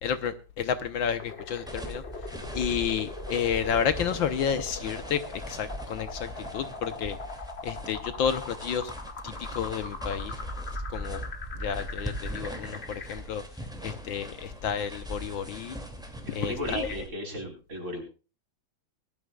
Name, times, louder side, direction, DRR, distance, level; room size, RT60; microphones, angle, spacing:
voice 1, 0.0-2.0 2.5-7.2 7.6-8.9 9.2-10.4 10.9-11.2 11.6-13.4 13.8-15.8 16.3-16.9, left 7 dB, 70° left, 11 dB, 1.7 m, -31 dB
sound 1, 1.2-13.2, left 4 dB, 35° left, 1.5 m, -41 dB
sound 2, 1.7-17.1, right 1 dB, ahead, 2.3 m, -40 dB
voice 2, 16.2-18.0, equal, 35° right, 2 dB, 4.7 m, -35 dB
21.0 x 13.0 x 2.3 m, 0.32 s
omnidirectional pair, 2.3 m